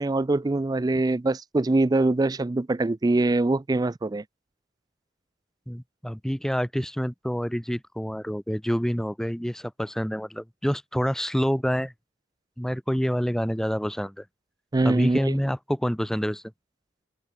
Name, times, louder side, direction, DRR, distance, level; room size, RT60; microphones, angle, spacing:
voice 1, 0.0-4.2 14.7-15.3, right 2 dB, 20° right, 0.4 m, -23 dB
voice 2, 5.7-11.9 12.6-14.2 14.8-16.4, equal, 5° left, 0.7 m, -27 dB
open air
head